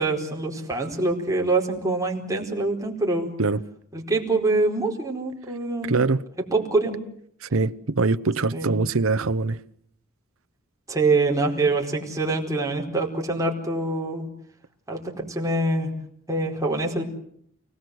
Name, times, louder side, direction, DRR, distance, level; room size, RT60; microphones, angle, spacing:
voice 1, 0.0-3.3 3.9-6.0 6.5-7.0 8.5-8.7 10.9-14.3 14.9-15.9 16.3-17.0, right 2 dB, 15° right, 4.6 m, -25 dB
voice 2, 5.8-6.2 7.4-9.6, right 3 dB, 75° right, 0.9 m, -23 dB
29.5 x 19.0 x 8.0 m
head